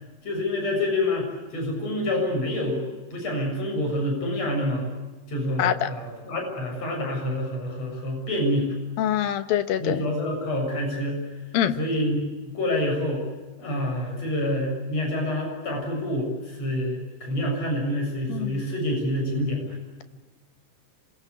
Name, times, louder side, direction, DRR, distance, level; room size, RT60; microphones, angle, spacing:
voice 1, 0.2-2.8 3.1-4.9 5.3-8.7 9.8-11.2 11.8-13.2 13.6-19.8, left 1 dB, 45° left, 2 dB, 8.1 m, -27 dB
voice 2, 5.6-5.9 9.0-10.0 11.5-11.8 18.3-18.6, left 10 dB, 90° left, 10 dB, 3.0 m, -24 dB
27.5 x 23.0 x 8.2 m, 1.2 s
omnidirectional pair, 4.0 m